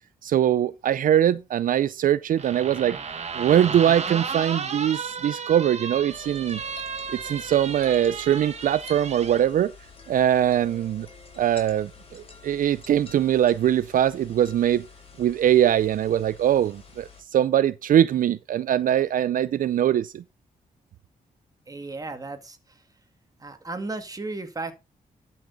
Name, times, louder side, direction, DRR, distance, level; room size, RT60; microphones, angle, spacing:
voice 1, 0.2-3.0 3.3-6.6 7.1-9.7 10.1-11.1 11.4-14.8 15.2-20.2, right 10 dB, 70° right, 0.4 m, -22 dB
sound 1, 2.4-9.4, right 5 dB, 50° right, 1.5 m, -33 dB
sound 2, 6.1-17.2, left 5 dB, 40° left, 4.9 m, -48 dB
voice 2, 21.7-22.9 23.4-24.7, right 3 dB, 25° right, 2.1 m, -35 dB
11.5 x 6.4 x 4.0 m
wide cardioid pair, 115°, 15 cm